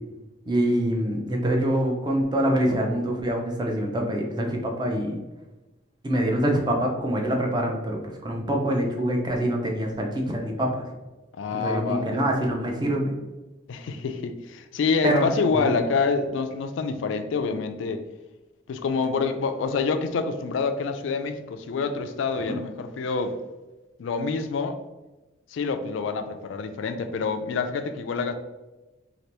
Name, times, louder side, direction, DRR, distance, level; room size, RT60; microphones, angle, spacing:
voice 1, 0.5-5.2 6.0-10.9 11.5-13.1 15.0-15.2 15.6-15.8 22.4-22.6, right 1 dB, 20° right, 1 dB, 0.5 m, -25 dB
voice 2, 11.4-12.3 13.7-18.0 18.7-23.4 24.0-24.8 25.5-28.3, left 4 dB, 75° left, 8 dB, 0.3 m, -27 dB
2.8 x 2.5 x 3.2 m, 1.1 s
head